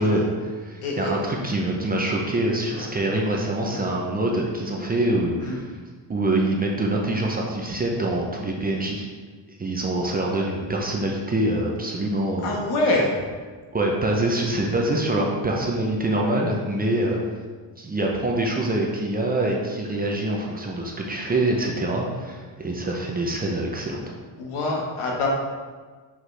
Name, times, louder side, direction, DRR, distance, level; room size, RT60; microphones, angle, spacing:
voice 1, 0.0-5.7 6.1-9.0 9.5-12.5 13.7-17.2 17.8-24.0, right 1 dB, 20° right, -1 dB, 0.5 m, -25 dB
voice 2, 0.8-1.1 2.8-2.9 3.7-3.9 5.4-5.6 12.4-13.2 24.4-25.3, left 2 dB, 85° left, -1 dB, 1.4 m, -25 dB
5.8 x 5.1 x 3.2 m, 1.5 s
cardioid pair, 165°, 49 cm